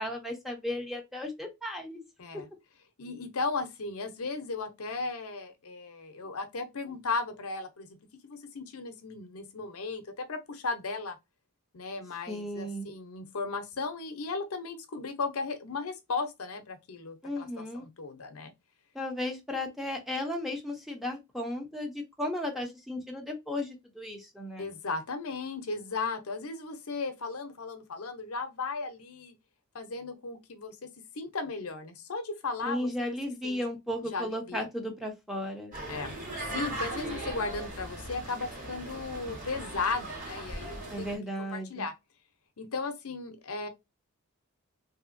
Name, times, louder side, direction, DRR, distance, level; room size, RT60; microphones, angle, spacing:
voice 1, 0.0-2.0 12.3-12.9 17.2-17.9 18.9-24.7 32.6-35.7 40.9-41.9, left 1 dB, ahead, 0.7 m, -35 dB
voice 2, 3.0-7.9 8.2-11.2 11.7-18.5 24.6-29.3 29.7-30.9 31.2-33.2 33.4-33.6 34.1-34.6 35.9-36.1 36.5-41.1 41.5-41.9 42.6-43.7, left 4 dB, 70° left, 0.7 m, -36 dB
sound 1, 35.7-41.2, right 1 dB, 35° right, 1.4 m, -38 dB
3.4 x 2.7 x 2.5 m
head